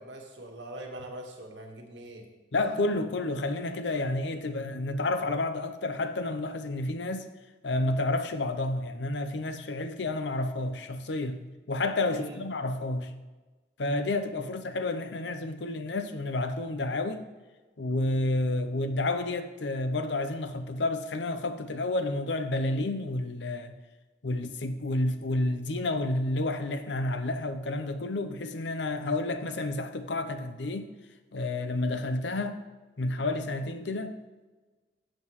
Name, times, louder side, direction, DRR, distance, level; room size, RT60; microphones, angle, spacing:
voice 1, 0.0-2.3 12.1-12.4, right 1 dB, 80° right, 1.6 m, -42 dB
voice 2, 2.5-7.3 7.6-13.2 13.8-17.3 17.8-23.7 24.2-30.9 31.3-32.6 33.0-34.2, left 2 dB, 65° left, 0.7 m, -30 dB
11.5 x 7.6 x 3.1 m
head